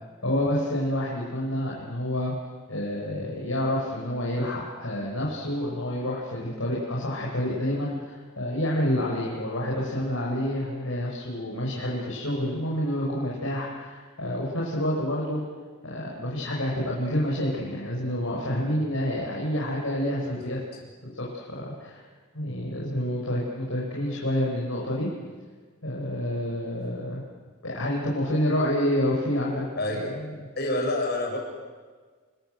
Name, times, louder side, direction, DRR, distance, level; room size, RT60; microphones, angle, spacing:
voice 1, 0.2-2.3 2.7-15.5 15.8-20.6 21.2-22.0 22.3-25.1 25.8-27.2 27.6-29.6 29.9-30.1, left 1 dB, 70° left, -3 dB, 5.3 m, -28 dB
voice 2, 20.2-20.5 22.5-22.6 29.8-30.1 30.5-31.4, left 1 dB, 50° left, 1 dB, 6.8 m, -28 dB
29.5 x 20.5 x 7.9 m, 1.5 s
head